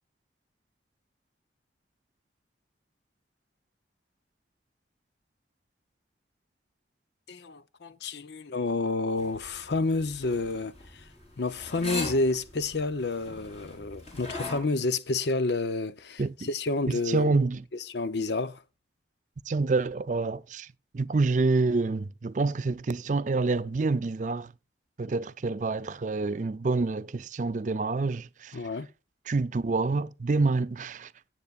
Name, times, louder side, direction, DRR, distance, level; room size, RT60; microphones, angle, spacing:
voice 1, 7.3-11.1 11.4-17.3 17.7-18.6 28.5-28.9, left 3 dB, 70° left, 0.7 m, -30 dB
sound 1, 9.2-14.6, left 2 dB, 35° left, 4.2 m, -39 dB
voice 2, 17.1-17.6 19.5-20.7 20.9-24.5 25.0-28.6 29.3-31.1, right 3 dB, 45° right, 0.4 m, -27 dB
17.5 x 8.2 x 2.4 m
head